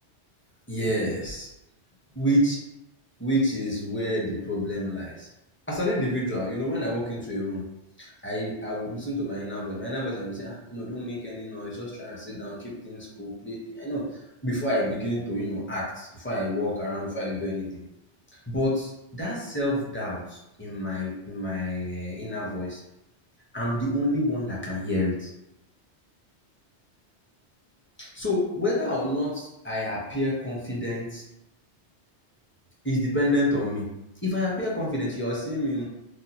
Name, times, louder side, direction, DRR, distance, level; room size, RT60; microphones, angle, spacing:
voice 1, 0.7-1.5 2.2-2.6 3.2-5.3 5.7-7.6 8.0-17.8 18.5-22.8 23.5-25.3 28.0-31.2 32.8-33.9 34.2-35.8, left 1 dB, 10° left, -5 dB, 0.7 m, -28 dB
3.0 x 2.1 x 4.1 m, 0.88 s
omnidirectional pair, 1.2 m